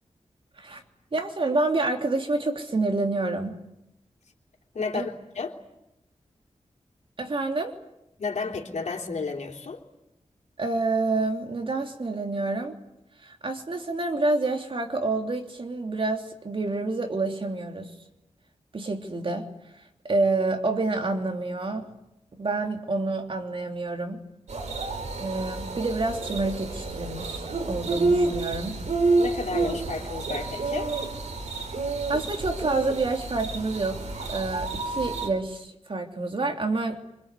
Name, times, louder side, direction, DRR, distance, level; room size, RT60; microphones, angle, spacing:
voice 1, 1.1-3.6 4.9-5.1 7.2-7.8 10.6-12.7 13.2-17.9 18.7-19.5 20.0-21.9 22.4-24.2 25.2-28.8 32.1-34.0 34.3-37.0, right 3 dB, 45° right, 4 dB, 3.1 m, -28 dB
voice 2, 4.7-5.5 8.2-9.8 29.2-30.9, left 4 dB, 80° left, 1 dB, 3.5 m, -32 dB
sound 1, 24.5-35.3, right 3 dB, 75° right, 4.1 m, -29 dB
27.5 x 26.0 x 8.3 m, 0.87 s
wide cardioid pair, 110°, 12 cm